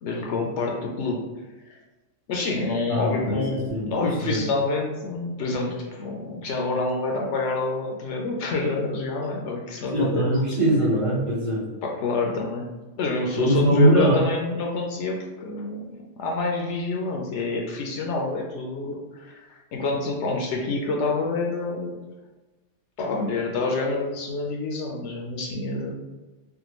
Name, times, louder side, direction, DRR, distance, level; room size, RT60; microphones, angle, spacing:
voice 1, 0.0-1.2 1.7-1.8 2.3-10.3 11.8-12.7 13.0-19.5 19.7-22.0 23.0-25.9, left 3 dB, 70° left, 0 dB, 0.8 m, -27 dB
voice 2, 2.9-3.9 4.2-4.4 9.9-11.6 13.3-14.2, right 1 dB, 30° right, -7 dB, 0.7 m, -22 dB
3.4 x 2.2 x 3.0 m, 1.2 s
omnidirectional pair, 1.3 m